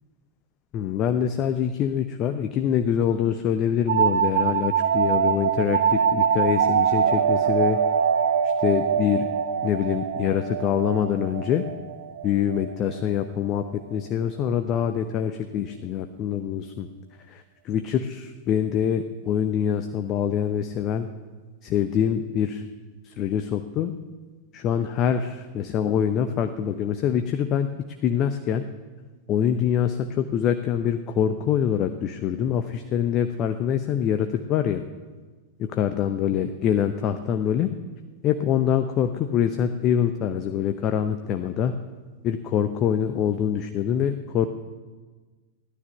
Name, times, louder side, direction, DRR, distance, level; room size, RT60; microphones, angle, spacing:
voice 1, 0.7-7.8 8.6-9.3 9.6-11.6 12.2-16.9 17.3-21.1 21.6-22.6 23.0-23.9 24.5-27.7 28.0-28.6 29.3-34.8 35.6-37.7 38.2-41.7 42.2-44.5, left 9 dB, 35° left, 8 dB, 0.8 m, -25 dB
sound 1, 3.9-13.3, right 7 dB, 60° right, 0.7 m, -23 dB
16.0 x 12.0 x 6.6 m, 1.3 s
figure-of-eight pair, 90°, 0 cm